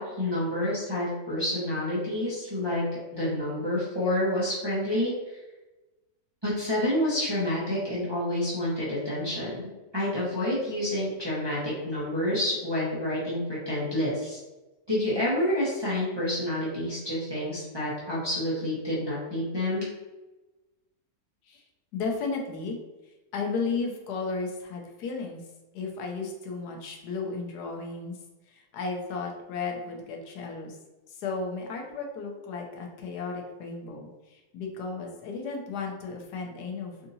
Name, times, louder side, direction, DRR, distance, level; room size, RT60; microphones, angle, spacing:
voice 1, 0.0-2.8 3.1-5.1 6.4-9.6 9.9-14.4 14.9-19.8, left 1 dB, 20° right, -9 dB, 0.8 m, -28 dB
voice 2, 21.9-22.8 23.3-25.4 25.7-28.2 28.5-30.8 31.1-37.1, left 4 dB, 85° left, 1 dB, 1.2 m, -34 dB
3.6 x 2.7 x 2.7 m, 1.1 s
omnidirectional pair, 1.7 m